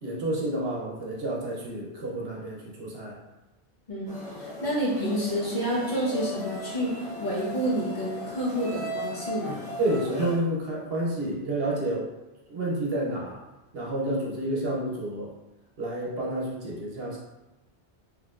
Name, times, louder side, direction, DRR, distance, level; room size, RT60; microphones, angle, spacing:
voice 1, 0.0-3.2 9.8-12.1 12.5-13.4 13.7-15.3 15.8-17.2, right 1 dB, 65° right, -3 dB, 1.0 m, -29 dB
sound 1, 4.1-10.4, left 1 dB, 5° left, 1.1 m, -37 dB
voice 2, 4.4-9.6, equal, 45° left, -6 dB, 1.1 m, -29 dB
4.1 x 3.1 x 2.4 m, 1.0 s
omnidirectional pair, 1.1 m